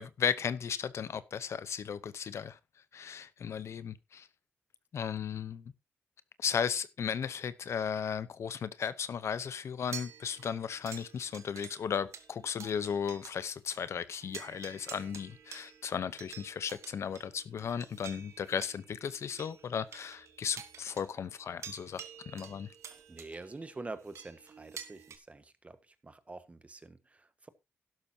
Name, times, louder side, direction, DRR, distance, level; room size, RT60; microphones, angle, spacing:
voice 1, 0.0-2.6 2.9-4.3 4.9-5.7 6.4-22.7, left 7 dB, 70° left, 0.8 m, -35 dB
sound 1, 9.9-13.4 13.7-13.8 14.2-25.2, right 7 dB, 75° right, 1.5 m, -50 dB
voice 2, 23.1-27.5, right 3 dB, 25° right, 1.4 m, -46 dB
12.0 x 11.5 x 2.8 m
cardioid pair, 85°, 5 cm